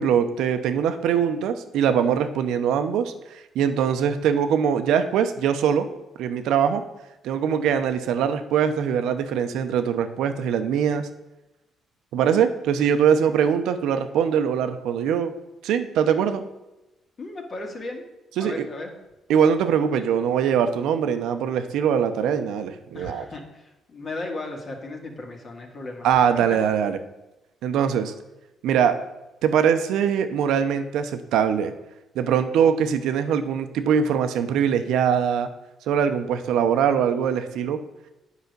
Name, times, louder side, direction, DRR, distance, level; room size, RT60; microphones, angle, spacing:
voice 1, 0.0-3.1 3.5-5.9 6.2-6.8 7.2-11.1 12.1-15.3 15.6-16.4 18.4-18.7 19.3-23.2 26.0-27.0 27.6-28.1 28.6-29.0 29.4-31.7 32.1-35.5 35.9-37.8, right 8 dB, 85° right, 9 dB, 0.7 m, -22 dB
voice 2, 17.2-18.0 18.4-18.9 22.9-26.2 26.5-26.6, left 2 dB, 45° left, 2 dB, 1.9 m, -35 dB
8.3 x 5.0 x 6.6 m, 0.97 s
cardioid pair, 90°, 0 cm